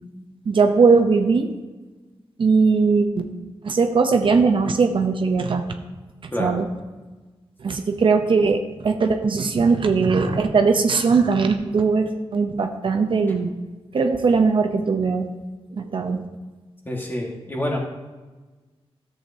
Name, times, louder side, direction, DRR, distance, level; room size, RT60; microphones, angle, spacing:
voice 1, 0.5-1.5 2.4-3.3 3.6-5.7 6.2-6.7 7.6-13.5 13.9-15.3 15.8-16.2, right 4 dB, 55° right, 5 dB, 0.6 m, -19 dB
voice 2, 16.8-17.8, left 1 dB, 20° left, 0 dB, 1.6 m, -27 dB
13.5 x 7.9 x 2.7 m, 1.3 s
wide cardioid pair, 145°, 10 cm